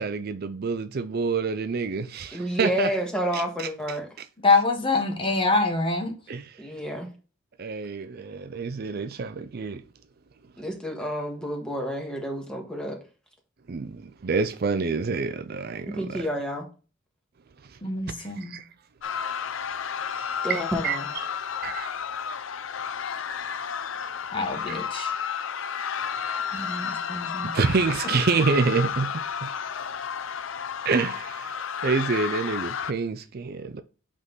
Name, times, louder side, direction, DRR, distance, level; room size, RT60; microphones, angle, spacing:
voice 1, 0.0-2.9 3.3-4.3 6.3-6.5 7.6-9.8 13.7-16.3 17.7-17.8 18.1-18.7 20.5-21.0 21.6-21.9 24.7-24.8 27.4-29.5 30.8-33.8, right 4 dB, 50° right, 0.5 m, -28 dB
voice 2, 2.3-4.1 6.6-7.1 10.6-13.0 15.8-16.6 20.4-21.1, equal, 5° left, 1.6 m, -29 dB
voice 3, 4.4-6.1 17.8-18.6 24.3-25.1 26.5-27.5, left 3 dB, 25° left, 1.0 m, -25 dB
sound 1, 19.0-32.9, left 7 dB, 75° left, 0.5 m, -32 dB
8.1 x 3.7 x 4.0 m
head